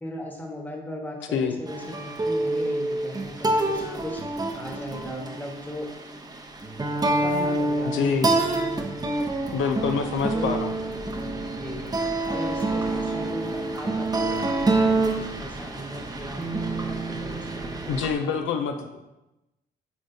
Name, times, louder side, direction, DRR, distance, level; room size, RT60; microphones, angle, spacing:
voice 1, 0.0-5.9 6.8-8.8 9.4-9.6 10.3-10.6 11.1-11.9 12.3-18.5 18.8-19.0, left 1 dB, 10° left, 1 dB, 1.2 m, -38 dB
sound 1, 1.7-18.1, right 2 dB, 20° right, 0.7 m, -27 dB
voice 2, 7.8-8.3 9.5-10.7 17.9-19.0, left 6 dB, 75° left, 5 dB, 0.5 m, -26 dB
8.2 x 4.9 x 2.7 m, 0.98 s
cardioid pair, 90°, 20 cm